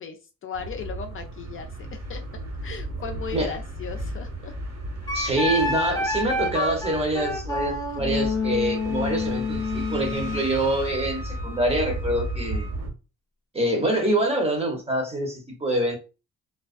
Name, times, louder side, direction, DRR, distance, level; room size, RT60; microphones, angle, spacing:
voice 1, 0.0-2.2 2.6-4.5, left 6 dB, 45° left, 0.4 m, -37 dB
sound 1, 0.5-12.9, right 1 dB, 55° right, 1.4 m, -34 dB
Wind instrument woodwind instrument, 5.1-10.4, left 3 dB, 15° left, 0.8 m, -28 dB
voice 2, 5.1-12.7 13.5-16.0, right 1 dB, 20° right, 0.9 m, -25 dB
Wind instrument woodwind instrument 2, 8.7-12.8, right 2 dB, 90° right, 1.0 m, -42 dB
2.3 x 2.2 x 2.4 m
cardioid pair, 90°, 30 cm